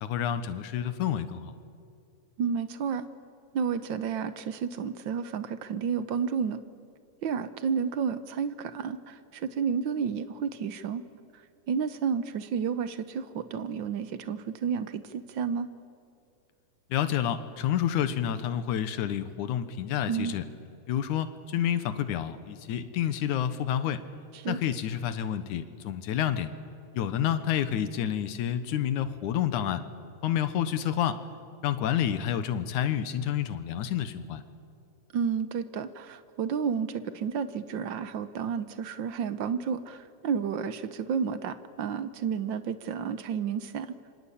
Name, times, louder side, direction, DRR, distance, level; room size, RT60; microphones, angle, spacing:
voice 1, 0.0-1.5 16.9-20.4 20.9-24.0 24.5-26.5 26.9-29.8 30.2-31.2 31.6-34.4, left 10 dB, 85° left, 11 dB, 2.7 m, -29 dB
voice 2, 2.4-3.0 3.5-6.6 7.2-11.0 11.7-15.7 20.1-20.4 24.3-24.6 35.1-43.9, right 6 dB, 75° right, 12 dB, 1.1 m, -31 dB
27.5 x 25.0 x 8.5 m, 2.5 s
omnidirectional pair, 3.4 m